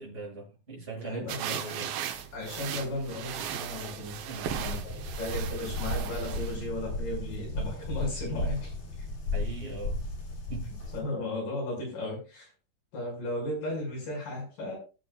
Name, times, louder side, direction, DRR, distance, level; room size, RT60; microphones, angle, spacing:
voice 1, 0.0-1.9 4.3-4.8 9.3-10.0 10.5-10.7, right 2 dB, 15° right, -6 dB, 6.5 m, -40 dB
voice 2, 0.9-1.9 2.3-4.2 4.6-8.7 10.9-12.5 12.9-14.8, left 1 dB, 75° left, -2 dB, 7.8 m, -35 dB
sound 1, 1.3-6.6, right 9 dB, 85° right, 2.8 m, -37 dB
sound 2, 2.1-10.3, right 3 dB, 35° left, 3.5 m, -51 dB
sound 3, 4.5-11.0, left 1 dB, 50° left, 4.1 m, -34 dB
20.0 x 8.3 x 2.4 m, 0.32 s
omnidirectional pair, 4.0 m